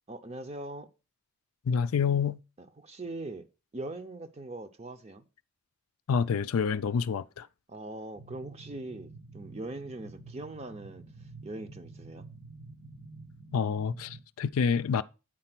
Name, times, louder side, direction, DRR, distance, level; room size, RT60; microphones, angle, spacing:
voice 1, 0.1-0.9 2.8-3.5 3.7-5.2 7.7-11.0 11.4-12.3, right 2 dB, 30° right, 0.6 m, -41 dB
voice 2, 1.7-2.4 6.1-7.5 13.5-15.0, left 6 dB, 85° left, 0.4 m, -28 dB
sound 1, 8.1-14.2, right 3 dB, 90° right, 3.6 m, -49 dB
8.9 x 4.2 x 5.9 m
head